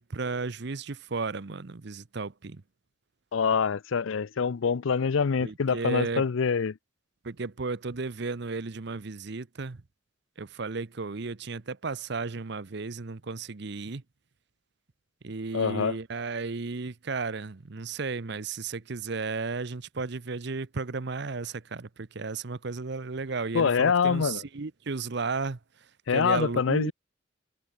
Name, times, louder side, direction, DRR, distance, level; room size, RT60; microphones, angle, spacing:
voice 1, 0.0-2.6 5.4-6.2 7.2-9.8 10.4-14.0 15.2-25.6 26.1-26.9, right 4 dB, 55° right, 0.8 m, -34 dB
voice 2, 3.3-6.8 15.5-16.0 23.5-24.4 26.1-26.9, left 6 dB, 80° left, 0.5 m, -25 dB
head